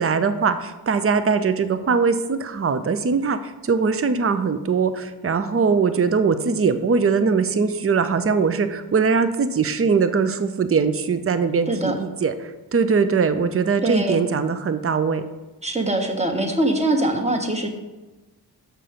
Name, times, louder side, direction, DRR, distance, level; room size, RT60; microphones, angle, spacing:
voice 1, 0.0-15.2, right 5 dB, 35° right, 10 dB, 0.5 m, -21 dB
voice 2, 13.8-14.2 15.6-17.7, right 1 dB, 15° right, 1 dB, 1.2 m, -22 dB
6.9 x 6.0 x 5.0 m, 1.1 s
wide cardioid pair, 65°, 41 cm